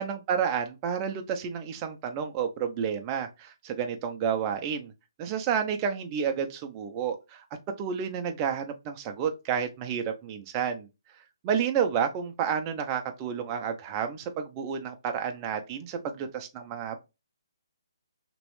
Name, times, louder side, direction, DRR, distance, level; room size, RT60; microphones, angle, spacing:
voice 1, 0.0-4.9 5.2-7.4 7.8-10.9 11.4-17.0, right 7 dB, 20° right, 0.5 m, -30 dB
3.0 x 3.0 x 3.1 m
hypercardioid pair, 155°, 2 cm